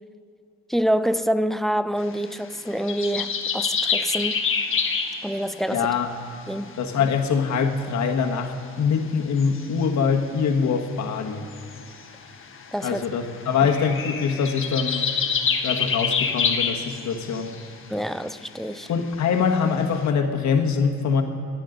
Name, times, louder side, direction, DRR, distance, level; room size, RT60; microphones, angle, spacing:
voice 1, 0.7-4.5 5.2-5.9 6.5-6.8 12.7-13.0 13.6-13.7 17.9-18.9, equal, ahead, 0.4 m, -26 dB
sound 1, 2.0-6.0 6.7-6.8 7.0-7.8 8.3-8.4 9.4-10.2 11.3-17.8 18.2-19.0 19.3-20.1, left 6 dB, 45° left, 1.4 m, -27 dB
voice 2, 5.7-6.1 6.8-11.4 12.8-15.1 15.6-17.6 18.9-21.2, left 6 dB, 65° left, 1.5 m, -23 dB
27.5 x 9.7 x 3.9 m
cardioid pair, 90°, 30 cm